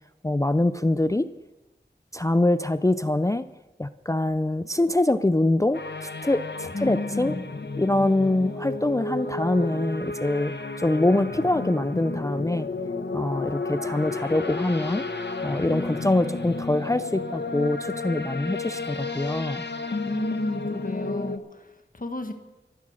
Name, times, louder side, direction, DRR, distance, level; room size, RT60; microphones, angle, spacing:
voice 1, 0.2-1.3 2.1-3.4 3.8-7.3 7.8-12.7 13.1-15.0 15.4-19.6, left 2 dB, 15° left, 12 dB, 0.4 m, -24 dB
sound 1, 5.7-21.4, left 3 dB, 65° left, 1.0 m, -32 dB
voice 2, 6.7-7.4 20.0-22.3, left 2 dB, 45° left, 6 dB, 1.5 m, -32 dB
14.0 x 11.5 x 6.4 m, 1.0 s
wide cardioid pair, 55°, 19 cm